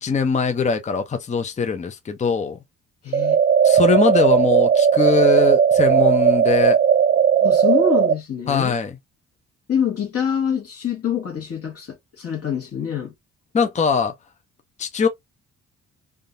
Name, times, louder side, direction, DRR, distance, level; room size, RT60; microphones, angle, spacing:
voice 1, 0.0-2.6 3.6-6.8 8.5-9.0 13.5-14.1 14.8-15.1, left 5 dB, 25° left, 0.6 m, -21 dB
voice 2, 3.0-3.4 7.4-8.7 9.7-13.1, left 7 dB, 50° left, 1.2 m, -25 dB
sound 1, 3.1-8.1, right 8 dB, 35° right, 0.4 m, -16 dB
3.6 x 2.3 x 2.5 m
cardioid pair, 90°, 30 cm